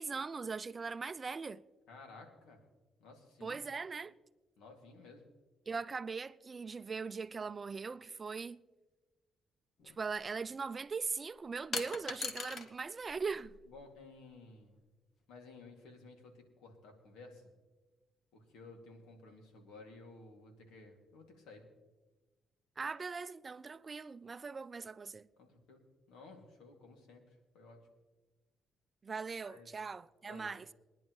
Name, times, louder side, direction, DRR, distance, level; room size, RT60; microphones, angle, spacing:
voice 1, 0.0-1.6 3.4-4.2 5.7-8.6 10.0-13.6 22.8-25.2 29.0-30.7, right 4 dB, 35° right, 0.4 m, -40 dB
voice 2, 1.9-2.6 3.0-3.6 4.6-5.3 13.7-14.8 15.3-17.5 18.3-21.7 25.4-27.2 27.5-27.8 29.4-29.8 30.2-30.5, left 3 dB, 90° left, 2.4 m, -55 dB
sound 1, 9.8-10.0 11.7-12.7 13.0-13.9, left 5 dB, 60° left, 1.2 m, -40 dB
22.0 x 10.5 x 3.1 m
cardioid pair, 90°, 0 cm